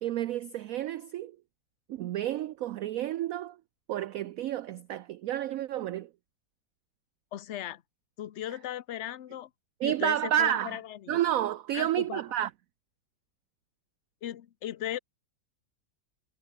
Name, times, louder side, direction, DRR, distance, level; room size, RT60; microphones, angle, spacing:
voice 1, 0.0-1.4 1.9-3.6 3.9-6.1 9.8-10.8 11.1-12.5, right 11 dB, 75° right, 0.8 m, -30 dB
voice 2, 7.3-7.8 8.2-9.5 9.8-11.2 11.7-12.2 14.2-15.0, left 11 dB, 55° left, 0.8 m, -37 dB
omnidirectional pair, 1.9 m